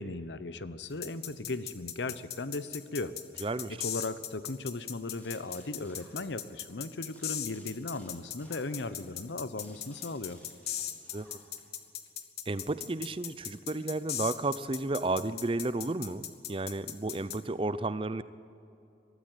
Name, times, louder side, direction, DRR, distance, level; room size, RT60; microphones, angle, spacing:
voice 1, 0.0-3.4 3.7-10.4, left 2 dB, 85° left, 14 dB, 0.9 m, -37 dB
sound 1, 1.0-17.4, left 10 dB, 60° left, 1.4 m, -38 dB
voice 2, 3.4-3.8 11.1-11.3 12.5-18.2, right 2 dB, 30° right, 15 dB, 0.6 m, -32 dB
sound 2, 5.2-6.7 7.1-11.8, equal, 10° left, 3.5 m, -59 dB
21.5 x 14.0 x 9.0 m, 2.7 s
head